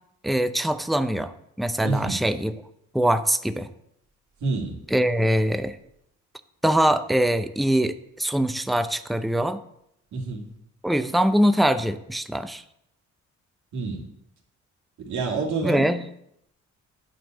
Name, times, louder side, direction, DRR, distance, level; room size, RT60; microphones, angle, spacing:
voice 1, 0.2-1.3 1.6-2.5 2.9-3.7 4.9-5.8 6.6-9.6 10.8-12.6 15.6-16.0, right 1 dB, ahead, 11 dB, 0.6 m, -23 dB
voice 2, 1.8-2.2 4.4-4.8 10.1-10.4 13.7-14.0 15.0-15.9, right 4 dB, 70° right, 1 dB, 2.4 m, -27 dB
9.1 x 5.2 x 7.7 m, 0.77 s
cardioid pair, 90°, 30 cm